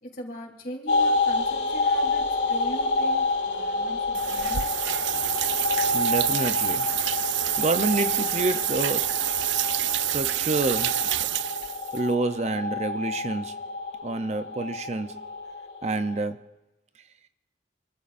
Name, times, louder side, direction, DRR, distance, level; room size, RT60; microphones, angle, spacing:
voice 1, 0.0-4.7, equal, 50° left, 3.6 m, -40 dB
sound 1, 0.9-16.3, left 3 dB, 80° left, 2.2 m, -28 dB
sound 2, 4.1-12.0, right 14 dB, 85° right, 0.4 m, -28 dB
voice 2, 5.9-6.9 7.2-7.3 7.6-9.2 9.8-11.0 11.9-13.6 14.0-15.2 15.8-16.5, right 2 dB, 40° right, 0.6 m, -28 dB
27.5 x 14.0 x 2.6 m
head